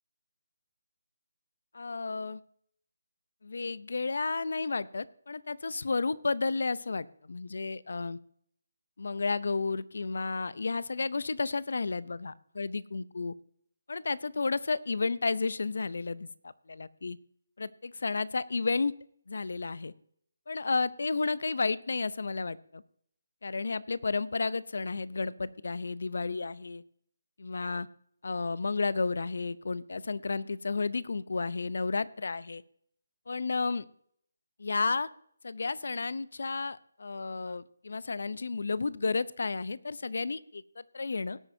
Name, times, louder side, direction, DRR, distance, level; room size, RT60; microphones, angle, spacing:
voice 1, 1.7-2.4 3.4-8.2 9.0-13.3 13.9-17.2 17.6-18.9 19.3-19.9 20.5-22.8 23.4-26.8 27.4-27.9 28.2-32.6 33.3-33.8 34.6-35.1 35.4-41.4, left 4 dB, 65° left, 18 dB, 0.6 m, -32 dB
17.5 x 9.0 x 2.7 m, 0.65 s
figure-of-eight pair, 160°, 0 cm